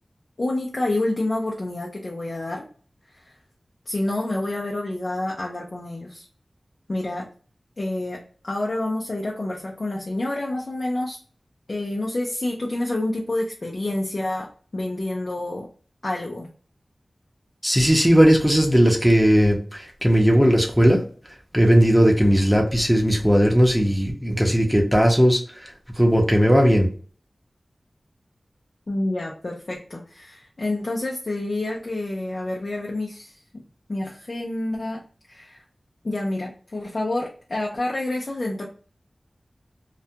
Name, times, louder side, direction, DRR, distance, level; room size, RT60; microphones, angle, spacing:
voice 1, 0.4-2.6 3.1-3.3 3.9-6.2 6.9-7.3 7.8-11.2 11.7-14.5 14.7-15.7 16.0-16.5 28.9-33.3 33.9-35.0 35.3-35.6 36.0-38.7, left 2 dB, 55° left, -2 dB, 0.5 m, -28 dB
voice 2, 17.6-21.0 21.5-25.4 26.0-26.9, equal, ahead, 1 dB, 0.8 m, -17 dB
2.3 x 2.2 x 2.7 m, 0.41 s
wide cardioid pair, 55°, 0 cm